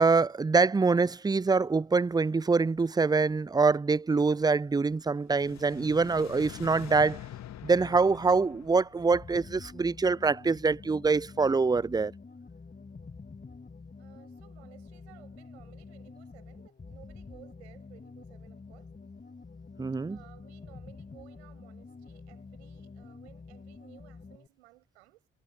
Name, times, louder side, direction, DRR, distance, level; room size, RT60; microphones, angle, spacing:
voice 1, 0.0-7.2 7.6-12.1 19.8-20.2, right 4 dB, 10° right, 0.5 m, -25 dB
sound 1, 5.1-10.3, left 11 dB, 55° left, 2.4 m, -46 dB
sound 2, 9.1-24.5, left 4 dB, 25° left, 2.4 m, -48 dB
voice 2, 14.0-18.9 20.1-25.3, right 19 dB, 75° right, 7.1 m, -57 dB
figure-of-eight pair, 40°, 33 cm